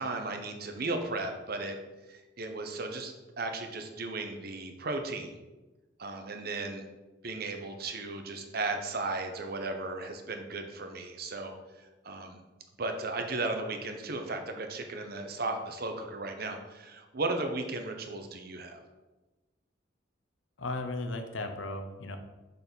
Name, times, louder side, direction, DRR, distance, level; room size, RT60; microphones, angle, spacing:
voice 1, 0.0-1.8 2.1-5.4 6.0-6.8 7.2-11.5 12.0-12.4 12.8-18.8, right 2 dB, 55° right, 5 dB, 0.9 m, -35 dB
voice 2, 20.6-22.2, left 2 dB, 80° left, 7 dB, 0.8 m, -35 dB
6.7 x 4.2 x 5.3 m, 1.1 s
head